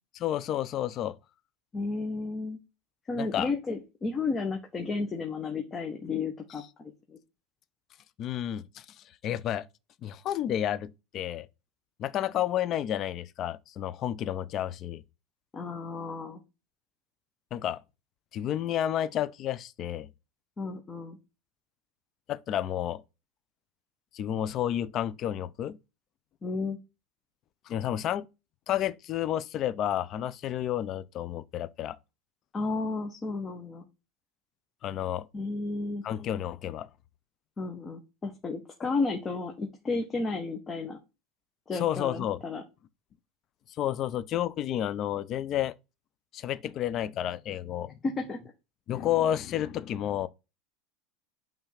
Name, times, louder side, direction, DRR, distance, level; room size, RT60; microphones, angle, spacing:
voice 1, 0.1-1.1 3.2-3.5 8.2-8.8 9.2-9.7 10.0-11.5 12.0-15.0 17.5-17.8 18.3-20.1 22.3-23.0 24.1-25.8 27.7-28.3 28.7-32.0 34.8-35.3 36.0-36.9 41.8-42.4 43.8-45.7 46.3-47.9 48.9-50.3, left 11 dB, 45° left, 0.6 m, -31 dB
voice 2, 1.7-2.6 3.1-7.2 15.5-16.4 20.6-21.2 26.4-26.8 32.5-33.8 35.3-36.0 37.6-41.0 41.7-42.6 48.0-48.4, left 3 dB, 25° left, 1.2 m, -32 dB
5.7 x 3.6 x 5.7 m
supercardioid pair, 110°, 0 cm